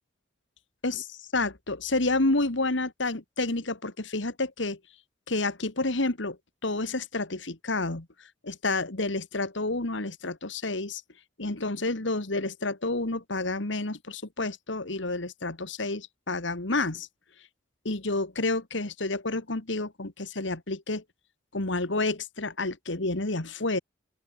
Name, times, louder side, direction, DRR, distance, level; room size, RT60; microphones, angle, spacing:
voice 1, 1.3-4.8 5.3-6.4 6.6-8.1 8.4-11.0 11.4-17.1 17.8-21.0 21.5-23.8, left 2 dB, 70° left, 2.0 m, -29 dB
open air
head